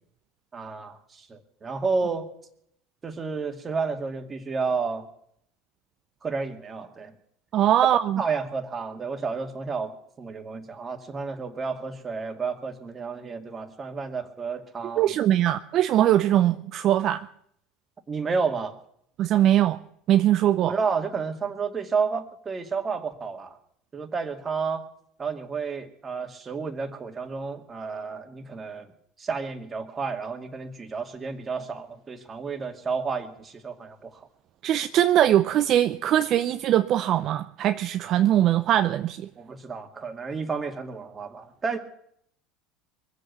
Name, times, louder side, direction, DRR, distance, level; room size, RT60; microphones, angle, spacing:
voice 1, 0.5-2.3 3.0-5.1 6.2-7.1 8.2-15.1 18.1-18.7 20.6-23.6 23.9-24.8 25.2-28.9 29.2-34.2 39.4-41.8, right 5 dB, 30° right, 2.2 m, -31 dB
voice 2, 7.5-8.2 15.0-17.3 19.2-19.8 20.1-20.7 34.6-39.3, right 12 dB, 55° right, 0.6 m, -21 dB
22.0 x 8.0 x 8.2 m
hypercardioid pair, 80°, 0 cm